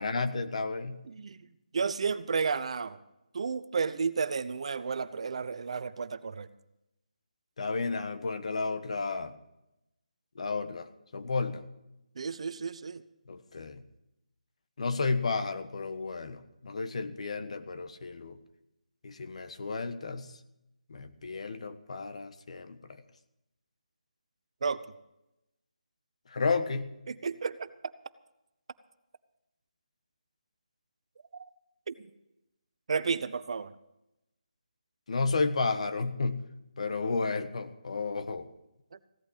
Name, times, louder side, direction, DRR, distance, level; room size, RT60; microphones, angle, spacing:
voice 1, 0.0-1.0 7.6-9.3 10.3-11.6 13.3-13.8 14.8-18.4 19.0-20.3 20.9-22.8 26.3-26.9 35.1-36.5 36.8-38.5, left 4 dB, 55° left, 10 dB, 1.4 m, -32 dB
voice 2, 1.1-1.4 1.7-3.0 3.3-6.5 12.2-13.0 24.6-24.8 27.1-27.7 31.9-32.0 32.9-33.7 38.9-39.0, right 5 dB, 50° right, 14 dB, 0.9 m, -32 dB
16.0 x 8.7 x 8.2 m, 0.88 s
figure-of-eight pair, 165°, 4 cm